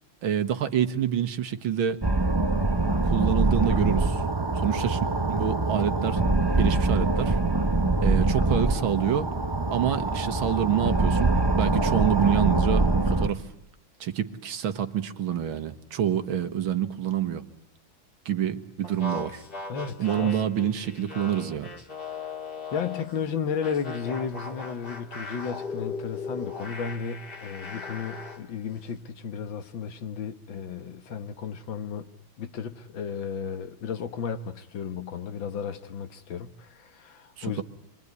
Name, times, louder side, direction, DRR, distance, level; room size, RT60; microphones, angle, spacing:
voice 1, 0.2-2.0 3.0-4.2 4.6-5.0 5.3-6.2 6.6-7.4 8.0-9.3 9.7-13.4 14.0-17.4 18.3-19.4 20.0-21.7 37.4-37.6, right 9 dB, 80° right, 2.2 m, -27 dB
sound 1, 2.0-13.3, right 2 dB, 20° right, 0.8 m, -24 dB
sound 2, 18.8-23.2 23.6-28.4, left 3 dB, 25° left, 2.0 m, -38 dB
voice 2, 19.7-20.4 22.7-32.1 32.4-37.6, left 6 dB, 70° left, 2.0 m, -34 dB
27.5 x 22.5 x 9.6 m
omnidirectional pair, 2.2 m